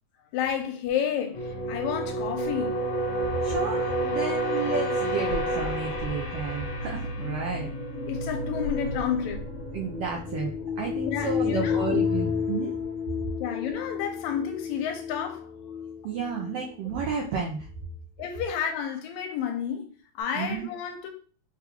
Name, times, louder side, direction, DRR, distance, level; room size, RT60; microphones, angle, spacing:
voice 1, 0.3-2.8 8.1-9.4 11.0-12.0 13.4-15.5 18.2-21.1, left 8 dB, 85° left, 1.9 m, -31 dB
sound 1, 1.3-16.0 16.2-16.6, left 1 dB, 60° left, 1.4 m, -30 dB
voice 2, 3.4-7.7 9.7-12.8 16.0-17.7 20.4-20.7, right 5 dB, 85° right, 1.3 m, -32 dB
5.7 x 2.3 x 2.9 m
omnidirectional pair, 3.3 m